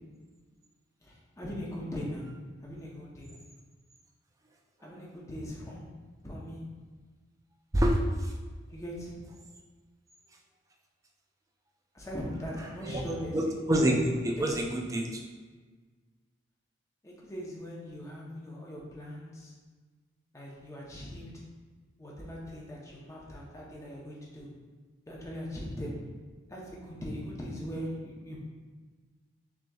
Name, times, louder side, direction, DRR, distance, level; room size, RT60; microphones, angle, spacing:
voice 1, 1.0-2.3 2.6-3.3 4.8-5.9 6.2-6.6 8.7-9.1 11.9-13.6 14.4-14.6 17.0-19.5 20.3-21.4 22.0-24.5 25.1-25.9 26.5-28.4, equal, 15° left, -4 dB, 0.7 m, -40 dB
voice 2, 7.7-8.3 12.8-13.0 13.3-15.2, right 1 dB, 15° right, 1 dB, 0.4 m, -27 dB
6.0 x 2.9 x 2.3 m, 1.4 s
head